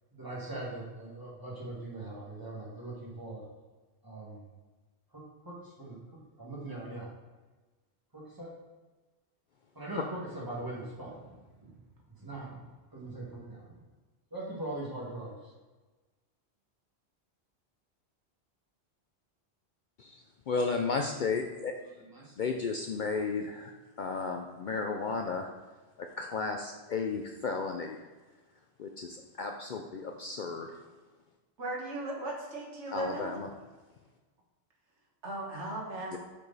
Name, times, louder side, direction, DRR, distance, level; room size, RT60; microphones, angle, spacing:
voice 1, 0.1-3.4 4.0-4.4 5.1-6.0 6.4-7.1 8.1-8.5 9.8-11.2 11.6-11.7 12.2-12.6 12.9-13.8 14.3-15.3 22.0-22.6, right 2 dB, 20° right, -5 dB, 1.9 m, -41 dB
voice 2, 20.5-21.7 22.4-23.7 24.0-25.5 26.0-28.0 28.8-30.7 32.9-33.5 36.1-36.2, left 4 dB, 60° left, 4 dB, 0.6 m, -33 dB
voice 3, 31.6-33.3 35.2-36.2, right 2 dB, 85° right, -2 dB, 1.7 m, -37 dB
6.9 x 5.0 x 4.0 m, 1.3 s
omnidirectional pair, 1.1 m